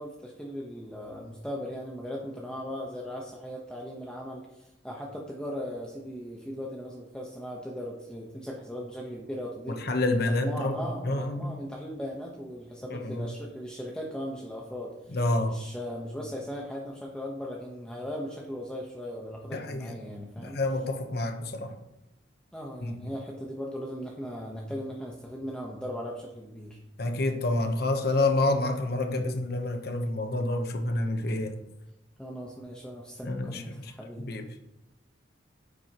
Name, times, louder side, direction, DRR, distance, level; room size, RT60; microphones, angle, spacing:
voice 1, 0.0-9.8 10.2-20.6 22.5-26.8 32.2-34.3, equal, 5° left, -2 dB, 1.0 m, -38 dB
voice 2, 9.7-10.8 11.0-11.5 12.9-13.3 15.1-15.5 19.5-19.9 20.4-21.7 22.8-22.9 27.0-31.5 33.2-33.6 34.2-34.4, left 2 dB, 55° left, 5 dB, 0.9 m, -28 dB
9.8 x 7.7 x 2.9 m, 0.91 s
head